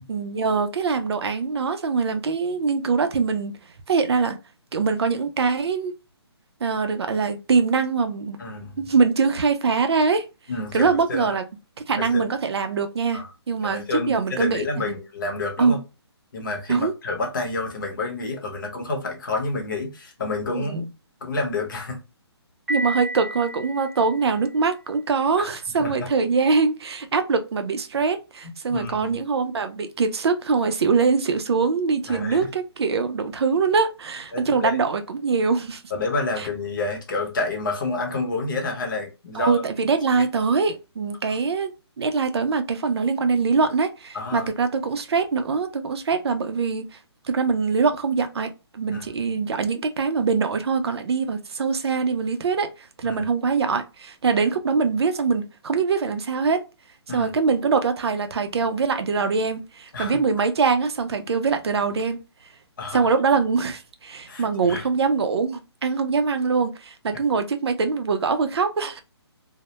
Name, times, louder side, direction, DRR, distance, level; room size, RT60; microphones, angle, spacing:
voice 1, 0.1-3.6 3.9-4.4 4.7-5.9 6.6-8.4 8.8-10.3 10.7-11.4 11.9-13.2 13.5-15.0 15.6-15.8 16.7-16.9 20.5-20.8 22.7-35.8 36.4-36.5 39.3-41.7 42.0-46.9 47.2-56.6 57.1-62.2 62.9-69.0, right 5 dB, 65° right, 0.4 m, -23 dB
voice 2, 8.4-8.9 10.5-11.3 12.0-12.3 13.1-13.2 13.6-15.8 16.3-20.9 21.2-22.0 25.4-25.5 25.8-26.1 28.7-29.1 32.1-32.4 34.3-34.8 35.9-39.6 40.3-40.4 44.1-44.5 48.9-49.0 53.0-53.2 57.1-57.3 59.9-60.2 62.8-63.1 64.3-64.8 67.1-67.2, left 3 dB, 45° left, 0.7 m, -29 dB
Piano, 22.7-24.6, equal, 5° right, 0.5 m, -32 dB
2.1 x 2.1 x 2.8 m
hypercardioid pair, 165°, 14 cm